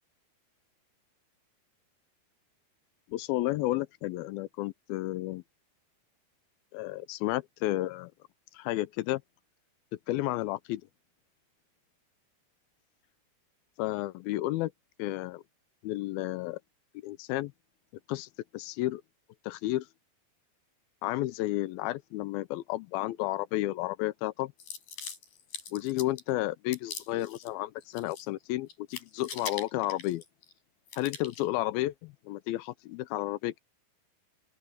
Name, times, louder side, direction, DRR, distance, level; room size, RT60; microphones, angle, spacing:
voice 1, 3.1-5.4 6.7-8.1 8.5-9.2 10.1-10.8 13.8-14.7 15.0-15.4 15.8-16.6 17.0-17.5 18.1-19.0 19.4-19.9 21.0-24.5 25.7-30.2 31.0-33.6, left 17 dB, 80° left, 2.3 m, -32 dB
sound 1, 24.6-26.3 26.7-27.5 27.8-28.4 28.7-30.5 30.9-31.5, left 6 dB, 65° left, 6.4 m, -42 dB
open air
omnidirectional pair, 4.5 m